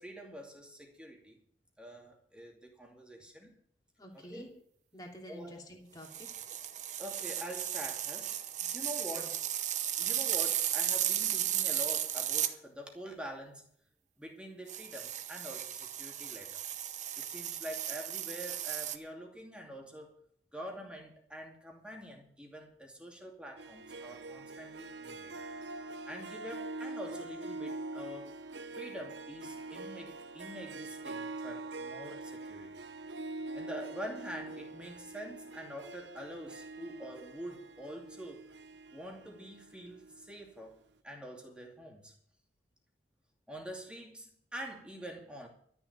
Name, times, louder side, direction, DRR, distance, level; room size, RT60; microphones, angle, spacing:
voice 1, 0.0-1.4 1.8-3.5 4.3-4.5 5.3-5.6 7.0-9.4 10.0-13.7 14.2-16.6 17.2-20.1 20.5-25.3 26.1-28.4 28.7-32.7 33.5-38.5 38.9-40.7 41.0-42.1 43.5-45.5, equal, 5° right, 2.6 m, -45 dB
voice 2, 4.0-4.5 4.9-6.6 9.1-9.3, equal, 20° left, 2.9 m, -49 dB
sound 1, 6.0-12.5 14.7-19.0, right 11 dB, 40° right, 0.9 m, -35 dB
Harp, 23.6-40.4, right 2 dB, 75° right, 0.8 m, -44 dB
13.0 x 7.0 x 9.5 m
head